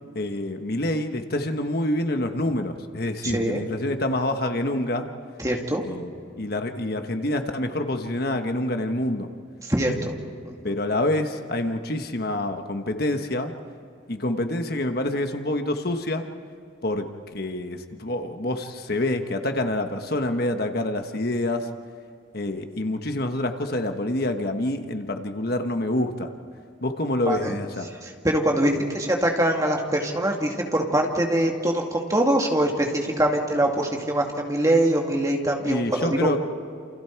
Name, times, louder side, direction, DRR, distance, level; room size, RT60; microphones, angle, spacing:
voice 1, 0.1-5.1 5.8-6.1 6.4-9.3 10.6-13.5 14.1-16.3 16.8-21.7 22.3-26.3 26.8-27.9 35.6-36.4, left 1 dB, 50° left, 6 dB, 1.3 m, -27 dB
voice 2, 3.2-3.6 5.4-5.8 9.6-10.2 10.4-10.5 27.2-27.6 28.0-36.3, right 1 dB, 15° right, 1 dB, 2.3 m, -23 dB
28.5 x 28.5 x 4.7 m, 2.4 s
head